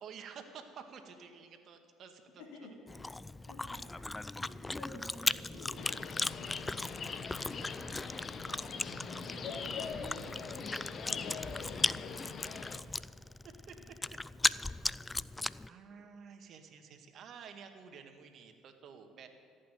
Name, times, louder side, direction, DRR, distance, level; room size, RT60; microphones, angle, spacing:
voice 1, 0.0-2.4 5.2-5.4 13.4-14.0 15.7-19.3, right 6 dB, 55° right, 6 dB, 1.8 m, -51 dB
voice 2, 2.4-2.7 3.5-12.5 15.5-16.0 18.9-19.2, left 2 dB, 75° left, -3 dB, 2.9 m, -52 dB
Chewing mastication, 2.9-15.7, left 2 dB, 15° left, 0.4 m, -37 dB
sound 1, 5.8-12.8, left 6 dB, 45° left, 1.1 m, -43 dB
15.0 x 8.6 x 9.2 m, 2.2 s
hypercardioid pair, 65°, 0 cm